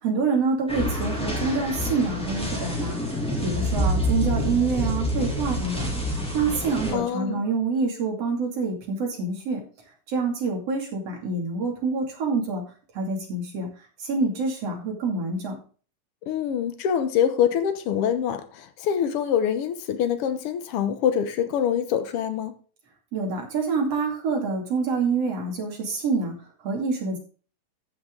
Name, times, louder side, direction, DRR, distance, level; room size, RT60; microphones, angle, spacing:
voice 1, 0.0-5.9 6.3-9.6 10.1-12.6 13.0-13.7 14.0-15.5 23.1-26.3 26.6-27.2, right 4 dB, 50° right, 3.5 m, -26 dB
sound 1, 0.7-6.9, equal, ahead, 2.1 m, -27 dB
voice 2, 6.9-7.4 16.3-22.6, left 8 dB, 75° left, 1.3 m, -25 dB
14.5 x 6.0 x 3.8 m
omnidirectional pair, 3.9 m